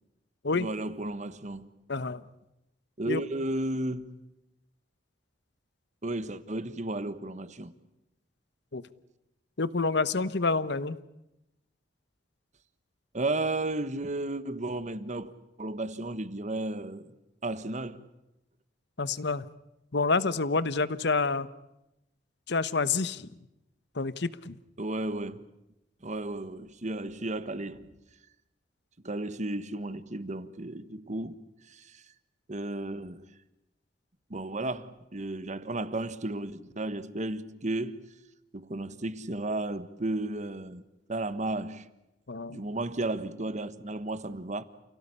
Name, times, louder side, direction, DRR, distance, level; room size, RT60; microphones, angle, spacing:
voice 1, 0.5-1.7 3.0-4.1 6.0-7.7 13.1-15.3 15.6-17.1 17.4-18.0 24.8-25.4 26.0-27.9 29.0-31.3 31.7-32.0 32.5-33.3 34.3-38.0 38.5-40.8 41.1-41.9 42.5-44.6, right 2 dB, 40° right, 1.4 m, -33 dB
voice 2, 1.9-2.2 3.1-3.2 8.7-8.8 9.6-11.0 19.0-19.5 19.9-21.5 22.5-23.3 24.0-24.6 42.3-42.6, left 4 dB, 65° left, 1.1 m, -28 dB
29.5 x 17.0 x 10.0 m
head